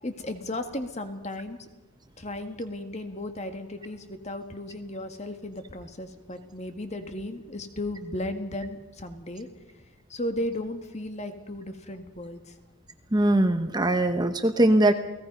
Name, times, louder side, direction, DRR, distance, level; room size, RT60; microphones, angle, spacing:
voice 1, 0.0-1.6 2.2-9.5 10.1-12.4, left 1 dB, 30° left, 7 dB, 1.9 m, -35 dB
voice 2, 13.1-14.9, right 1 dB, 20° right, 7 dB, 1.0 m, -21 dB
29.5 x 18.5 x 5.5 m, 1.0 s
head